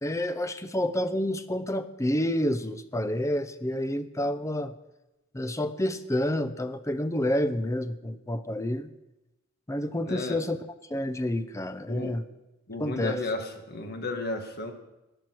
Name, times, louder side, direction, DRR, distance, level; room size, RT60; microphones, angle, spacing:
voice 1, 0.0-4.7 5.3-8.9 9.7-10.6 10.9-12.2 12.8-13.2, left 1 dB, 15° left, 11 dB, 0.7 m, -29 dB
voice 2, 10.1-10.4 11.9-12.2 12.7-14.7, left 2 dB, 50° left, 4 dB, 1.7 m, -33 dB
19.5 x 6.6 x 6.1 m, 0.98 s
head